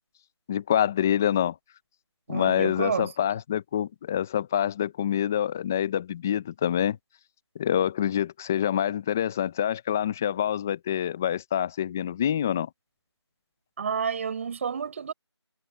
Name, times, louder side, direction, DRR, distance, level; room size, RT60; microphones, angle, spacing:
voice 1, 0.5-1.6 2.3-7.0 7.6-12.7, left 10 dB, 5° left, 0.5 m, -26 dB
voice 2, 2.3-3.1 13.8-15.1, right 6 dB, 30° right, 5.8 m, -30 dB
figure-of-eight pair, 165°, 15 cm